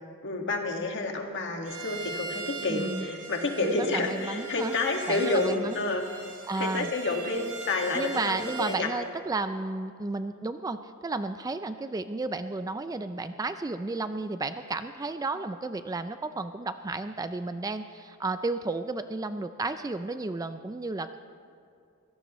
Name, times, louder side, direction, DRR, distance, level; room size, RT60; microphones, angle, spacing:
voice 1, 0.2-6.2 6.6-8.9, left 2 dB, 55° left, 2 dB, 1.8 m, -29 dB
Bowed string instrument, 1.7-8.9, right 3 dB, 85° right, 1.8 m, -41 dB
voice 2, 2.7-3.1 3.8-4.8 5.1-5.8 6.5-6.9 7.9-10.8 11.0-21.2, right 3 dB, 15° right, 10 dB, 0.3 m, -32 dB
23.5 x 16.5 x 3.1 m, 2.4 s
head